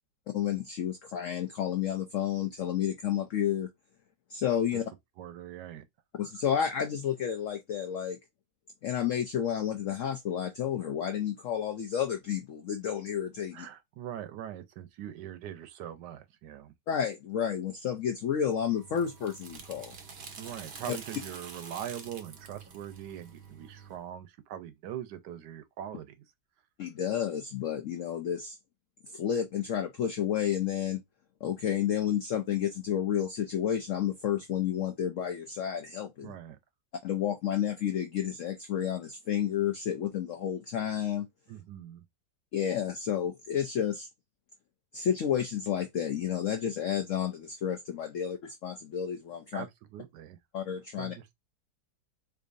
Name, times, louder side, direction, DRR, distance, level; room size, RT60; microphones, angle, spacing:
voice 1, 0.3-3.7 4.3-4.8 6.2-8.2 8.8-13.7 16.9-19.9 20.9-21.0 26.8-28.6 29.1-31.0 31.4-36.3 37.0-41.3 42.5-44.1 44.9-49.6 50.5-51.1, left 9 dB, 80° left, 0.7 m, -31 dB
voice 2, 5.2-5.8 13.5-16.7 20.4-26.2 36.2-36.6 41.5-42.0 49.5-50.4 51.0-51.3, right 10 dB, 75° right, 1.2 m, -42 dB
sound 1, 18.5-24.0, right 5 dB, 60° right, 0.6 m, -47 dB
4.6 x 2.7 x 2.5 m
omnidirectional pair, 2.0 m